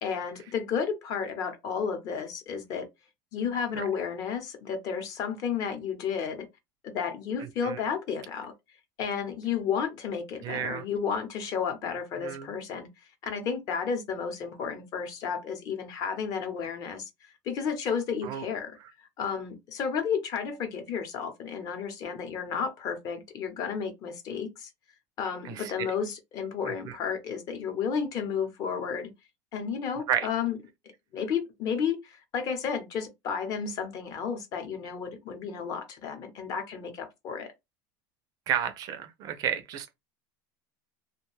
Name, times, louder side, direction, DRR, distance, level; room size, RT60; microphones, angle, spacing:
voice 1, 0.0-2.9 3.3-6.5 6.8-8.5 9.0-12.9 13.2-17.1 17.4-18.8 19.2-24.7 25.2-29.1 29.5-30.6 31.1-37.5, left 6 dB, 40° left, 0.7 m, -32 dB
voice 2, 10.4-10.8 12.2-12.5 18.2-18.5 25.4-25.9 26.9-27.0 30.1-30.3 38.5-39.9, right 9 dB, 40° right, 0.4 m, -31 dB
2.5 x 2.2 x 3.1 m
cardioid pair, 155°, 9 cm